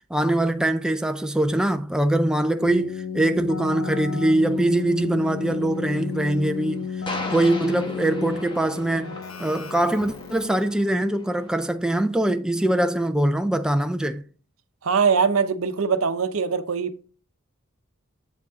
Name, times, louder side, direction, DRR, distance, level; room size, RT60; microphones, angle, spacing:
voice 1, 0.1-6.9 7.3-14.2, right 1 dB, 5° right, 0.4 m, -23 dB
Keyboard (musical), 2.6-10.7, left 6 dB, 70° left, 0.9 m, -33 dB
sound 1, 4.2-11.6, left 2 dB, 25° left, 1.2 m, -39 dB
voice 2, 14.8-17.0, right 5 dB, 75° right, 0.7 m, -22 dB
8.2 x 7.4 x 3.6 m
head